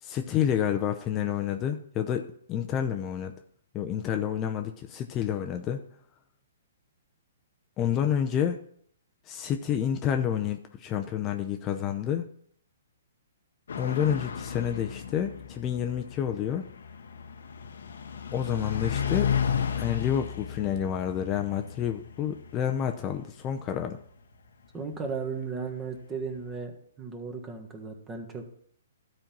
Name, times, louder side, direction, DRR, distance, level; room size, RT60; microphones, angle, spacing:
voice 1, 0.0-3.3 3.7-5.8 7.8-8.6 9.3-12.2 13.8-16.7 18.3-19.3 19.8-24.0, left 9 dB, 25° left, 5 dB, 0.7 m, -29 dB
sound 1, 13.7-24.7, left 7 dB, 75° left, 0.9 m, -34 dB
voice 2, 24.7-28.4, right 5 dB, 20° right, 4 dB, 1.5 m, -35 dB
12.5 x 4.4 x 5.3 m, 0.64 s
hypercardioid pair, 135°, 0 cm